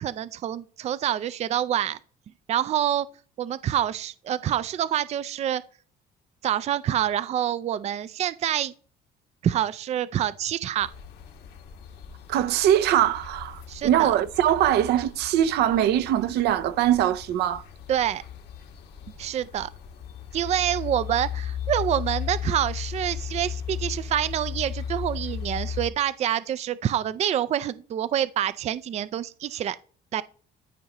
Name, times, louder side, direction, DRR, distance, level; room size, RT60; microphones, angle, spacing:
voice 1, 0.0-2.0 2.5-3.1 3.4-5.6 6.4-8.7 9.4-10.9 13.7-14.1 17.9-18.2 19.2-19.7 20.3-29.8 30.1-30.2, right 10 dB, 40° right, 0.4 m, -27 dB
sound 1, 10.8-25.9, left 8 dB, 80° left, 1.7 m, -36 dB
voice 2, 12.3-17.6, right 11 dB, 75° right, 0.7 m, -22 dB
13.0 x 5.2 x 3.0 m
cardioid pair, 110°, 17 cm